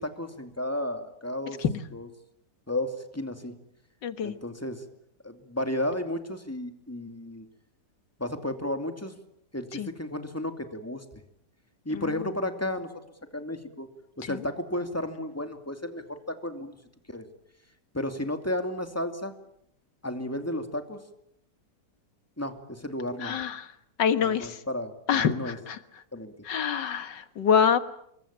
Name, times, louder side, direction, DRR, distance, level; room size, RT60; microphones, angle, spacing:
voice 1, 0.0-1.6 1.9-2.1 2.7-3.5 4.2-4.8 5.2-7.5 8.2-9.2 9.5-11.0 11.8-12.9 13.3-13.9 14.2-16.8 17.1-17.3 17.9-19.3 20.0-21.0 22.4-23.4 24.2-25.6 26.1-26.3, left 1 dB, 10° left, 7 dB, 2.5 m, -33 dB
voice 2, 4.0-4.4 9.7-9.9 11.9-12.1 14.3-14.4 23.2-23.7 24.0-24.6 25.1-25.8 26.5-27.8, left 7 dB, 85° left, 11 dB, 2.1 m, -26 dB
27.0 x 23.0 x 8.9 m, 0.76 s
omnidirectional pair, 1.9 m